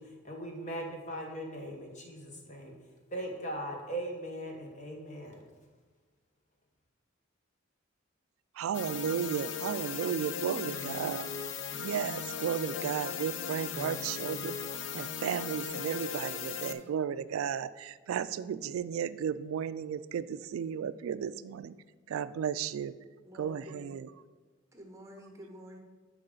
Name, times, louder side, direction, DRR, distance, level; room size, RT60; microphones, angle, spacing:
voice 1, 0.0-2.7 3.1-5.4, right 1 dB, 35° left, 1 dB, 1.3 m, -39 dB
voice 2, 8.5-11.3 11.7-14.6 14.9-21.7 22.1-22.9 23.3-24.1, right 8 dB, 85° right, 15 dB, 0.3 m, -34 dB
sound 1, 8.7-16.7, left 7 dB, 65° left, 0.5 m, -38 dB
voice 3, 23.2-23.9 24.7-25.8, equal, 15° right, 1 dB, 1.0 m, -49 dB
11.5 x 4.9 x 3.8 m, 1.3 s
head